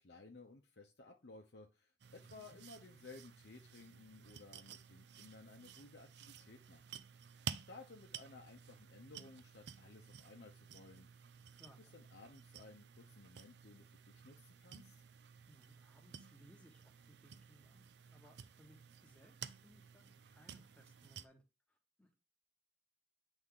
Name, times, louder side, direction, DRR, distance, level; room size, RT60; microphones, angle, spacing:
voice 1, 0.0-6.8 7.5-11.1 11.8-15.0, left 3 dB, 65° left, 1 dB, 0.8 m, -57 dB
sound 1, 2.0-21.3, right 7 dB, 70° right, 0.5 m, -53 dB
voice 2, 2.2-2.6 11.5-11.9 15.5-21.4 21.7-22.1, equal, 5° left, 2 dB, 1.3 m, -65 dB
8.2 x 3.5 x 3.7 m, 0.30 s
head